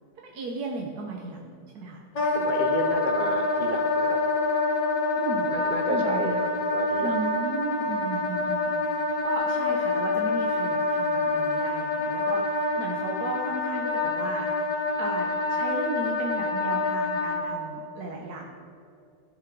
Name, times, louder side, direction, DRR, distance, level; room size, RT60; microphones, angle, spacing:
voice 1, 0.2-2.0 5.1-5.5 5.9-6.4 7.0-8.7 9.2-14.5 15.0-18.5, right 3 dB, 55° right, -1 dB, 1.5 m, -35 dB
Wind instrument woodwind instrument, 2.1-17.4, left 2 dB, 60° left, 2.2 m, -26 dB
voice 2, 2.3-4.2 5.5-7.2, right 2 dB, 85° right, 2 dB, 0.4 m, -32 dB
16.0 x 5.9 x 6.1 m, 2.5 s
omnidirectional pair, 2.1 m